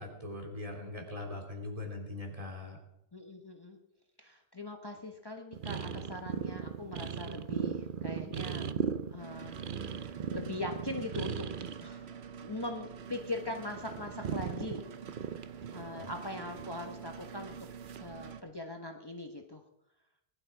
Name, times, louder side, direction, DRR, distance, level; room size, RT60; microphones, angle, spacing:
voice 1, 0.0-2.8 15.9-16.1, left 2 dB, 35° right, 0 dB, 3.2 m, -41 dB
voice 2, 3.1-3.8 4.2-8.7 9.1-11.5 11.8-14.8 15.7-17.6 17.9-19.6, left 2 dB, 25° left, 3 dB, 1.2 m, -41 dB
sound 1, 5.5-11.9 12.2-13.2 13.5-17.1 17.8-18.1, right 7 dB, 55° right, 0.8 m, -38 dB
sound 2, 9.2-18.4, right 7 dB, 80° right, 1.1 m, -47 dB
20.0 x 11.5 x 4.7 m, 0.84 s
omnidirectional pair, 1.1 m